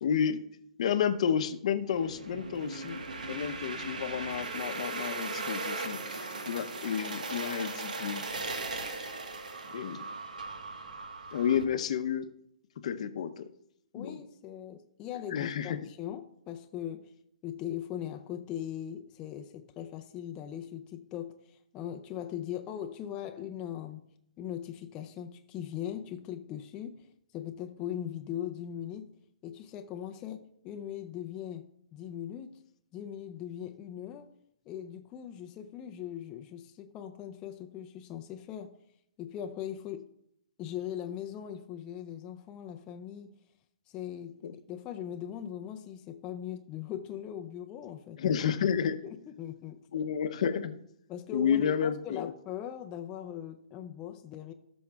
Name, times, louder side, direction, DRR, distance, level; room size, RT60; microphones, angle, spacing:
voice 1, 0.0-0.4 0.8-3.0 3.3-8.2 9.7-10.1 11.3-12.3 12.8-13.5 13.9-14.2 15.3-15.8 44.4-44.5 48.2-49.0 49.9-50.8 51.3-52.3, left 8 dB, 55° left, 0.7 m, -31 dB
sound 1, 1.9-11.6, right 3 dB, 90° right, 1.3 m, -38 dB
voice 2, 13.9-17.1 17.4-24.0 24.4-29.1 29.4-32.6 32.9-34.4 34.7-38.7 39.2-40.1 40.6-43.3 43.9-44.4 44.7-48.2 49.0-49.9 51.1-54.5, left 10 dB, 20° left, 0.5 m, -40 dB
17.5 x 6.2 x 2.3 m
hypercardioid pair, 155°, 4 cm